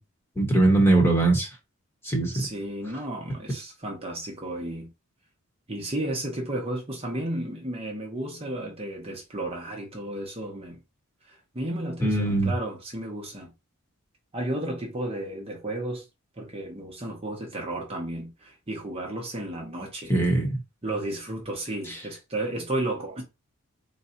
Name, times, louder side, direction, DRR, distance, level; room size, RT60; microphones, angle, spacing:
voice 1, 0.4-1.5 2.0-2.3 12.0-12.5 20.1-20.6 21.9-22.0, right 2 dB, 10° left, 1.1 m, -21 dB
voice 2, 2.3-4.9 5.7-10.8 11.3-13.5 14.3-16.0 16.4-20.1 20.8-23.2, right 1 dB, 25° right, 0.8 m, -33 dB
4.0 x 2.3 x 4.2 m
head